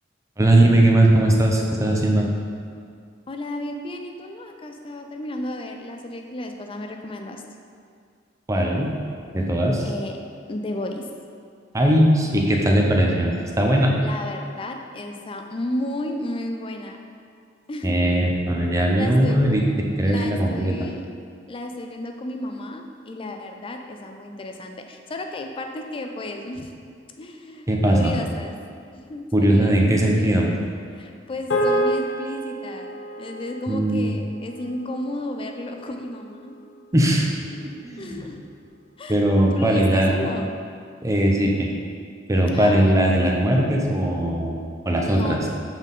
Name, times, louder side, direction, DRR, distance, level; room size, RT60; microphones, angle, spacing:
voice 1, 0.4-2.3 8.5-8.9 9.3-9.9 11.7-14.0 17.8-19.6 20.0-20.8 27.7-28.1 29.3-30.5 33.7-34.1 36.9-37.3 37.8-38.3 39.1-40.2 41.0-41.7 42.3-45.4, right 1 dB, 15° right, 0 dB, 0.6 m, -19 dB
voice 2, 3.3-7.4 9.8-10.2 10.5-11.1 14.0-17.0 17.7-18.0 19.0-19.4 20.0-21.1 21.5-26.8 27.2-28.6 28.9-30.5 31.0-36.6 38.0-38.4 39.0-40.6 42.5-43.0 45.1-45.5, left 1 dB, 30° left, 4 dB, 0.4 m, -33 dB
sound 1, 31.5-36.0, right 1 dB, 70° left, 0.8 m, -28 dB
7.3 x 4.0 x 3.6 m, 2.2 s
head